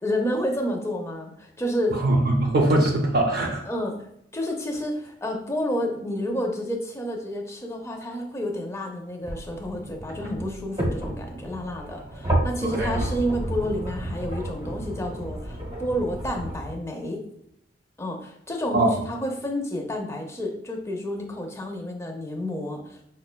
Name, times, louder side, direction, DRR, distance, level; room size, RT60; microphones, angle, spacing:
voice 1, 0.0-2.0 3.7-4.1 4.3-17.2 18.0-23.0, equal, 15° left, 2 dB, 0.5 m, -30 dB
voice 2, 1.9-3.6 12.6-12.9 18.7-19.0, right 2 dB, 60° right, 1 dB, 0.5 m, -22 dB
sound 1, 9.2-16.7, right 1 dB, 30° right, 0.9 m, -31 dB
5.2 x 2.1 x 2.2 m, 0.76 s
head